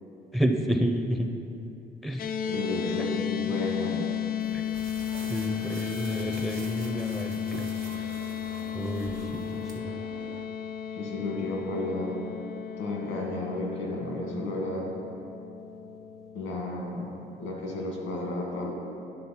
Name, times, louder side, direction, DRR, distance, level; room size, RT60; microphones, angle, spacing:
voice 1, 0.3-1.3 2.0-2.2 4.5-4.6 5.3-7.7 8.0-8.1 8.7-9.9, equal, ahead, 4 dB, 0.6 m, -30 dB
sound 1, 2.2-16.6, left 9 dB, 50° left, 0.4 m, -34 dB
voice 2, 2.5-4.0 10.9-12.1 12.8-14.9 16.3-17.1 17.4-18.7, left 2 dB, 90° left, -1 dB, 1.8 m, -32 dB
sound 2, 4.4-9.8, right 4 dB, 80° right, 1.0 m, -47 dB
sound 3, 5.1-10.5, right 6 dB, 60° right, 0.5 m, -46 dB
10.0 x 3.9 x 5.8 m, 2.8 s
cardioid pair, 90°, 20 cm